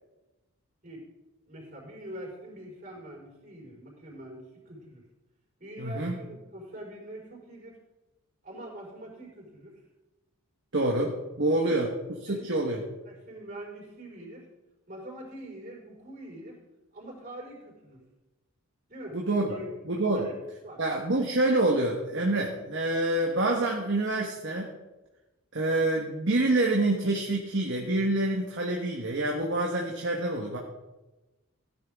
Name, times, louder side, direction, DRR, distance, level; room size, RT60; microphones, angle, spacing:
voice 1, 1.5-5.0 5.6-7.8 8.4-9.8 11.6-11.9 12.2-14.5 14.9-16.6 16.9-18.0 18.9-19.2 19.5-19.7 20.1-20.3 20.6-20.8, right 1 dB, 40° right, -2 dB, 5.1 m, -44 dB
voice 2, 5.8-6.1 10.7-11.9 12.3-12.8 19.1-19.5 19.8-20.3 20.8-24.7 25.5-30.6, right 2 dB, 55° right, 0 dB, 1.4 m, -27 dB
16.0 x 10.5 x 3.6 m, 1.1 s
head